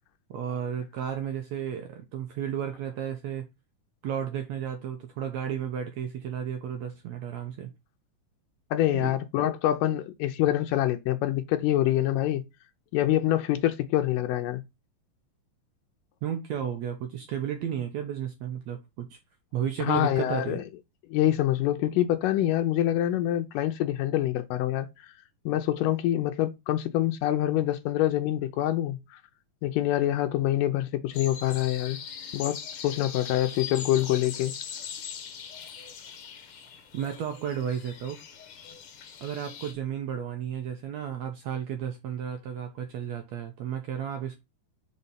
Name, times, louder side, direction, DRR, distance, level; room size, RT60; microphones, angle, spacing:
voice 1, 0.3-3.5 4.0-7.7 8.9-9.2 16.2-19.2 19.5-20.6 36.9-38.2 39.2-44.4, right 9 dB, 75° right, 1.7 m, -33 dB
voice 2, 8.7-12.4 12.9-14.6 19.8-20.6 21.1-25.1 25.5-29.2 29.6-32.0 32.3-32.6 32.8-34.5, left 13 dB, 80° left, 2.2 m, -26 dB
sound 1, 31.1-39.7, left 7 dB, 60° left, 1.5 m, -41 dB
5.3 x 4.4 x 5.5 m
omnidirectional pair, 3.9 m